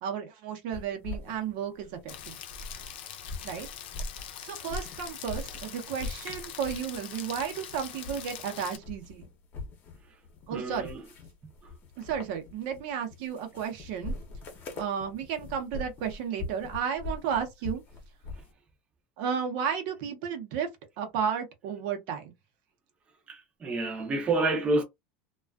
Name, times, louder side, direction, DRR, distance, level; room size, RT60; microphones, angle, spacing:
voice 1, 0.0-2.4 3.4-3.7 4.4-9.2 10.5-10.9 12.0-14.1 14.8-17.8 19.2-20.7 21.0-22.3, right 7 dB, 65° right, 0.8 m, -33 dB
sound 1, 0.7-2.9 3.2-5.7 6.0-7.0 7.3-8.5 8.7-18.5, left 2 dB, 35° left, 0.8 m, -41 dB
Rain, 2.1-8.8, left 9 dB, 85° left, 0.6 m, -43 dB
voice 2, 10.5-11.0 23.3-24.8, right 2 dB, 20° right, 0.6 m, -28 dB
2.4 x 2.2 x 2.3 m
supercardioid pair, 140°, 6 cm